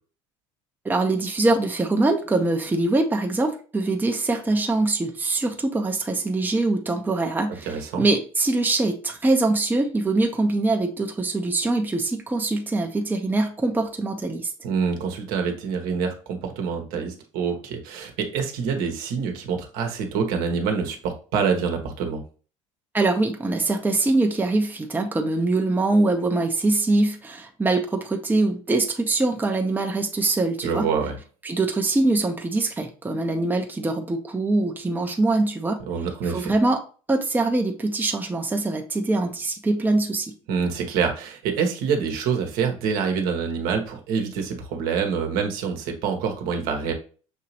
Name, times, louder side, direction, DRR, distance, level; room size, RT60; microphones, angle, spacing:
voice 1, 0.8-14.5 22.9-30.9 31.4-35.8 36.2-36.8 37.1-40.3, right 2 dB, 10° right, 4 dB, 0.8 m, -23 dB
voice 2, 7.7-8.0 14.6-22.2 30.6-31.2 35.9-36.5 40.5-46.9, right 6 dB, 60° right, 4 dB, 1.1 m, -26 dB
6.3 x 2.9 x 2.9 m, 0.38 s
hypercardioid pair, 70°, 16 cm